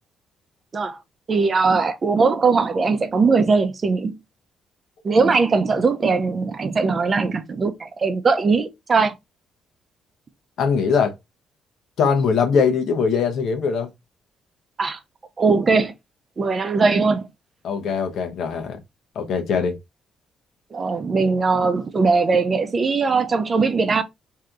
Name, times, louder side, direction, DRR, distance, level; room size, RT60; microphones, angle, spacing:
voice 1, 1.3-4.2 5.0-9.1 14.8-15.0 15.4-15.9 16.4-17.3 20.7-24.0, right 4 dB, 40° right, 0.6 m, -20 dB
voice 2, 10.6-11.1 12.0-13.9 17.6-18.8 19.1-19.8, left 5 dB, 70° left, 0.8 m, -21 dB
3.3 x 2.8 x 2.4 m
cardioid pair, 90°, 0 cm